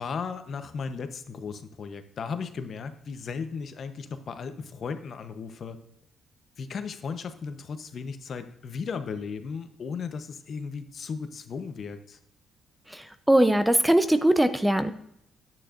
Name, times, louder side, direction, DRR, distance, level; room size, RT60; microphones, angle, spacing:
voice 1, 0.0-5.8 6.6-12.2, left 5 dB, 55° left, 9 dB, 0.8 m, -36 dB
voice 2, 12.9-14.9, right 1 dB, 5° right, 10 dB, 0.6 m, -21 dB
11.0 x 8.9 x 2.5 m, 0.75 s
cardioid pair, 90°, 0 cm